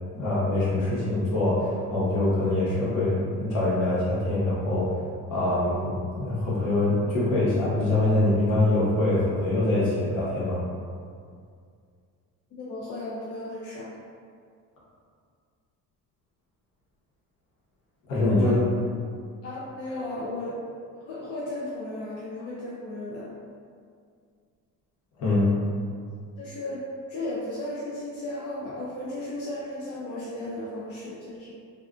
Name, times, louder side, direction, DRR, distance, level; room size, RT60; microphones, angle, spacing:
voice 1, 0.1-4.9 5.3-10.6 18.1-18.6 25.2-25.5, left 2 dB, 65° left, -8 dB, 1.0 m, -24 dB
voice 2, 12.6-13.9 18.3-18.5 19.4-20.6 21.1-23.3 26.4-26.8 27.1-31.5, left 1 dB, 50° left, -7 dB, 0.4 m, -35 dB
2.4 x 2.3 x 2.4 m, 2.2 s
cardioid pair, 155°, 33 cm